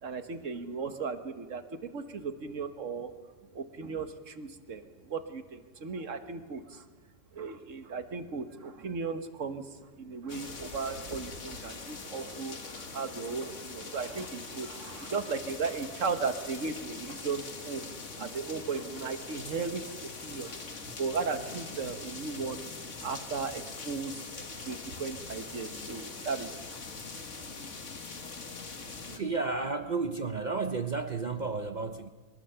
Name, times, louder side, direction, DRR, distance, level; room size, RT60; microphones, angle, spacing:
voice 1, 0.0-3.1 3.5-6.8 7.3-17.9 18.2-20.6 21.0-22.7 23.0-26.5, right 5 dB, 85° right, 8 dB, 1.7 m, -36 dB
sound 1, 10.3-29.2, left 4 dB, 75° left, 2.0 m, -42 dB
voice 2, 29.0-32.1, right 4 dB, 40° right, 8 dB, 0.8 m, -32 dB
23.0 x 21.5 x 7.0 m, 1.4 s
omnidirectional pair, 1.3 m